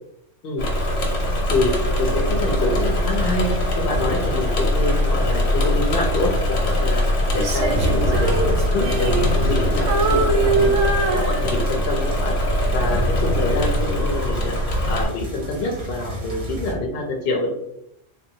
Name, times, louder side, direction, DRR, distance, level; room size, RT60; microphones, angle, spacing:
Engine / Mechanisms, 0.6-15.1, left 1 dB, 80° left, 1.1 m, -22 dB
sound 1, 0.7-16.7, equal, 30° right, 0.7 m, -30 dB
voice 1, 1.5-12.4 12.7-14.6 14.9-17.5, left 2 dB, 60° left, 1 dB, 0.7 m, -26 dB
Female singing, 7.3-9.6 9.9-11.9 12.4-12.7, right 3 dB, 70° right, 0.8 m, -23 dB
3.5 x 2.6 x 2.7 m, 0.81 s
omnidirectional pair, 1.3 m